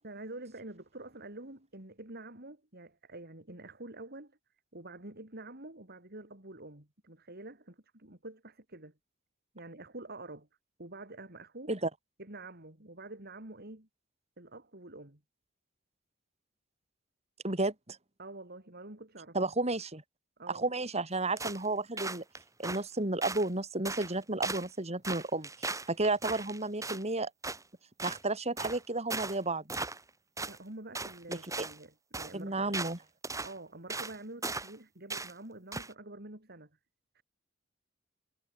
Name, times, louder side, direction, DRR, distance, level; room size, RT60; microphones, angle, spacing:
voice 1, 0.0-4.4 4.7-8.9 9.5-10.5 10.8-11.7 12.2-13.9 14.4-15.2 18.2-19.4 20.4-20.7 30.5-32.8 33.4-36.7 37.1-37.2, right 2 dB, 50° right, 4.2 m, -47 dB
voice 2, 17.4-18.0 19.3-20.0 20.5-22.2 22.6-27.3 28.0-29.6 31.3-31.7 32.3-33.0, right 2 dB, 30° right, 3.9 m, -32 dB
sound 1, 21.4-21.7 22.0-22.8 23.2-23.5 23.9-24.2 24.4-24.7 25.0-27.0 27.4-27.6 28.0-28.2 28.6-28.8 29.1-29.4 29.7-30.1 30.4-30.6 31.0-31.8 32.1-32.3 32.7-33.0 33.2-33.5 33.9-34.2 34.4-34.8 35.1-35.3 35.7-35.9, right 3 dB, 15° right, 4.8 m, -37 dB
head